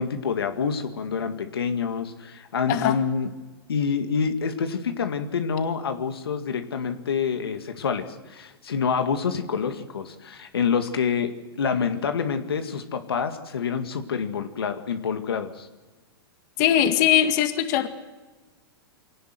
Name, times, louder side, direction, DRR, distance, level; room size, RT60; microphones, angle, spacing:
voice 1, 0.0-3.3 3.7-15.7, left 6 dB, 80° left, 7 dB, 2.1 m, -27 dB
voice 2, 16.6-17.9, left 11 dB, 50° left, 7 dB, 2.0 m, -20 dB
24.0 x 18.0 x 7.7 m, 1.2 s
hypercardioid pair, 110°, 13 cm